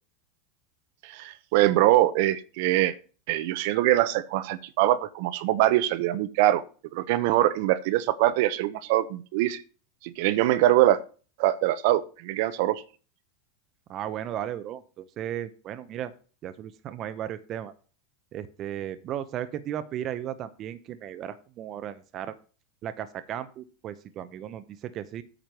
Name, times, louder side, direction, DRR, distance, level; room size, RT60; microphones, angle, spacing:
voice 1, 1.0-2.9 3.3-6.6 6.9-9.6 10.0-11.0 11.4-12.8, right 15 dB, 60° right, 14 dB, 0.9 m, -23 dB
voice 2, 13.9-16.1 16.4-17.7 18.3-22.3 22.8-25.2, right 10 dB, 35° right, 11 dB, 0.8 m, -35 dB
9.0 x 5.1 x 7.6 m, 0.37 s
supercardioid pair, 145°, 0 cm